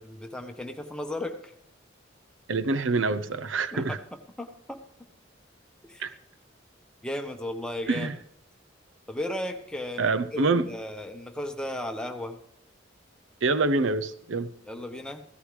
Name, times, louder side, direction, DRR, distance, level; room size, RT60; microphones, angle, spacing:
voice 1, 0.1-1.5 3.7-4.0 4.4-4.8 5.9-6.1 7.0-8.1 9.1-12.4 14.7-15.2, left 1 dB, 5° left, 4 dB, 1.1 m, -35 dB
voice 2, 2.5-4.0 6.0-6.1 7.9-8.2 10.0-10.7 13.4-14.5, right 3 dB, 90° right, 13 dB, 0.7 m, -26 dB
16.0 x 13.5 x 3.3 m, 0.73 s
head